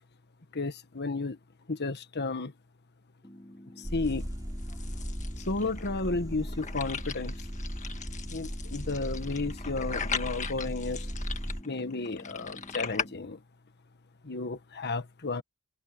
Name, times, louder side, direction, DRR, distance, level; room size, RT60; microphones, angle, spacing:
voice 1, 0.5-1.4 1.7-2.5 3.8-4.3 5.5-7.4 8.3-11.1 11.6-13.4 14.2-15.4, left 3 dB, 50° left, 1.5 m, -33 dB
sound 1, 3.2-13.2, equal, 20° left, 2.5 m, -50 dB
sound 2, 3.8-11.6, equal, 15° right, 4.0 m, -37 dB
sound 3, 4.1-13.1, left 6 dB, 35° left, 1.6 m, -39 dB
head